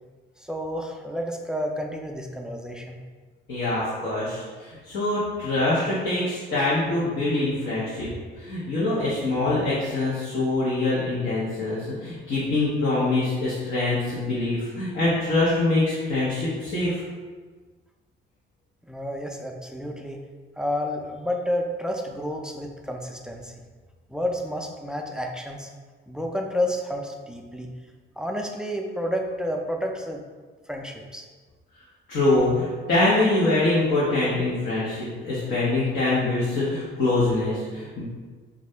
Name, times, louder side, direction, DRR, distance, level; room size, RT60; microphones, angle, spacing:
voice 1, 0.4-2.9 18.9-20.2 20.6-23.5 24.1-25.7 26.1-27.7 28.2-30.2 30.7-31.3, equal, 5° right, 1 dB, 0.3 m, -30 dB
voice 2, 3.5-8.1 8.4-17.0 32.1-38.0, left 2 dB, 90° left, -9 dB, 0.9 m, -24 dB
2.7 x 2.4 x 3.2 m, 1.4 s
cardioid pair, 90°, 20 cm